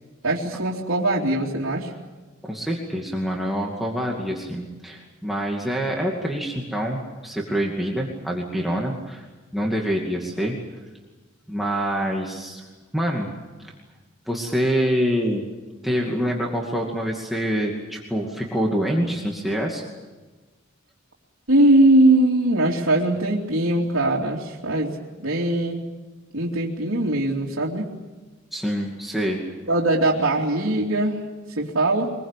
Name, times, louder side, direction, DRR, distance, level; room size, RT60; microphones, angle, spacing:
voice 1, 0.2-1.9 21.5-25.0 25.2-25.8 26.3-27.9 29.7-31.2 31.6-32.1, right 1 dB, 80° right, -4 dB, 2.9 m, -21 dB
voice 2, 2.4-9.3 9.5-10.6 11.5-12.6 12.9-13.3 14.3-15.4 15.8-19.8 28.5-29.4, equal, ahead, -2 dB, 2.4 m, -26 dB
24.0 x 21.5 x 8.3 m, 1.2 s
head